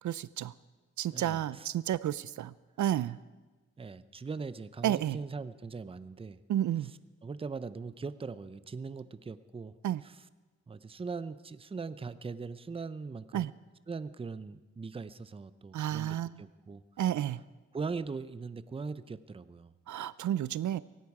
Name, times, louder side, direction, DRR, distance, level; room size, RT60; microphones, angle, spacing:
voice 1, 0.0-0.5 1.0-3.2 4.8-5.2 6.5-6.9 9.8-10.0 13.3-13.5 15.7-16.4 17.0-17.4 19.9-20.8, right 12 dB, 80° right, 18 dB, 0.5 m, -31 dB
voice 2, 1.1-1.7 3.8-6.4 6.8-9.7 10.0-10.3 10.7-13.5 13.9-16.8 17.7-19.7, right 4 dB, 20° right, 15 dB, 0.5 m, -40 dB
17.5 x 16.5 x 4.8 m, 1.2 s
wide cardioid pair, 135°, 29 cm